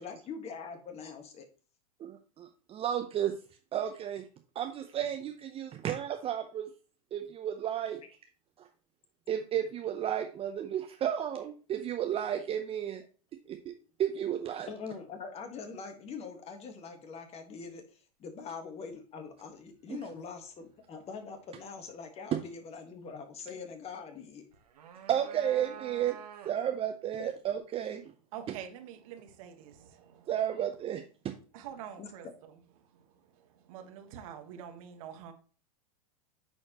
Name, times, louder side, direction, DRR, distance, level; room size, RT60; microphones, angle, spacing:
voice 1, 0.0-1.4 14.7-24.4 32.0-32.1, left 5 dB, 30° left, 1.6 m, -43 dB
voice 2, 2.0-3.3 3.7-4.2 4.5-6.7 7.1-8.0 8.6-8.7 9.3-13.0 13.5-13.7 14.0-14.7 19.9-20.0 22.3-22.4 25.1-26.2 26.4-28.0 30.3-31.3, right 10 dB, 30° right, 0.8 m, -32 dB
sound 1, 24.5-26.8, right 9 dB, 80° right, 1.2 m, -48 dB
voice 3, 28.3-30.3 31.5-32.5 32.8-35.3, right 9 dB, 60° right, 1.4 m, -46 dB
9.3 x 4.4 x 3.0 m
hypercardioid pair, 105°, 20 cm